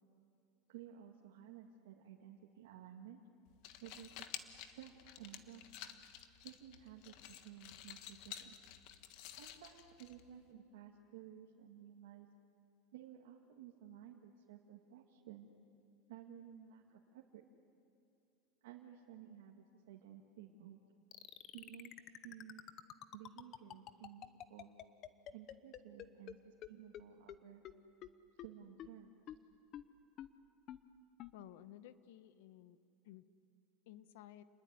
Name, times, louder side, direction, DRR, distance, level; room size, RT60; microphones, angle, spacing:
voice 1, 0.7-3.2 3.8-5.6 6.4-8.6 9.3-12.3 12.9-15.5 16.1-16.8 17.1-17.4 18.6-20.8 21.5-21.9 22.2-22.6 23.1-24.7 25.3-27.6 28.4-29.1, right 10 dB, 90° right, -1 dB, 2.1 m, -55 dB
sound 1, 3.5-10.5, left 11 dB, 50° left, 1.5 m, -52 dB
sound 2, 21.1-26.3 26.6-26.7 26.9-27.0 27.3-27.4 27.6-27.7 28.0-28.1 28.4-28.5 28.8-28.9 29.3-29.4 29.7-29.8 30.2-30.3 30.7-30.8 31.2-31.3, left 11 dB, 35° left, 0.9 m, -48 dB
voice 2, 31.3-32.8 33.0-33.2 33.9-34.4, left 13 dB, 70° left, 13 dB, 1.1 m, -55 dB
29.0 x 21.0 x 9.7 m, 2.6 s
supercardioid pair, 160°, 0 cm